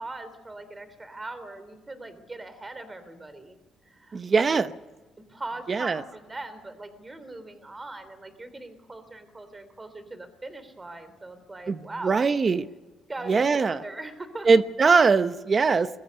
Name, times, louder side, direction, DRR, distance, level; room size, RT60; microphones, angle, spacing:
voice 1, 0.0-3.6 3.9-4.6 5.3-12.2 13.1-14.5, right 2 dB, 20° right, 11 dB, 3.5 m, -40 dB
voice 2, 4.1-4.7 5.7-6.0 11.7-12.7 13.3-13.8 14.4-15.9, right 4 dB, 40° right, 12 dB, 0.9 m, -21 dB
22.0 x 14.5 x 9.6 m, 1.2 s
cardioid pair, 90°, 0 cm